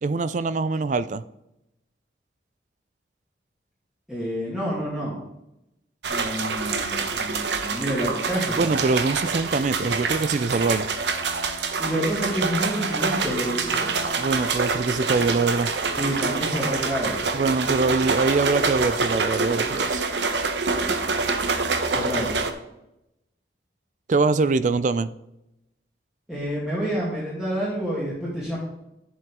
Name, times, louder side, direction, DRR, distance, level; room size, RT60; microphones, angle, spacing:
voice 1, 0.0-1.2 8.6-10.9 14.2-15.7 17.3-20.0 24.1-25.1, right 3 dB, 40° right, 15 dB, 0.4 m, -23 dB
voice 2, 4.1-5.2 6.1-8.7 11.8-13.9 16.0-17.2 21.9-22.3 26.3-28.6, equal, 5° right, -8 dB, 2.2 m, -28 dB
sound 1, 6.0-22.5, right 4 dB, 75° right, 1.0 m, -26 dB
10.5 x 7.7 x 3.7 m, 0.86 s
head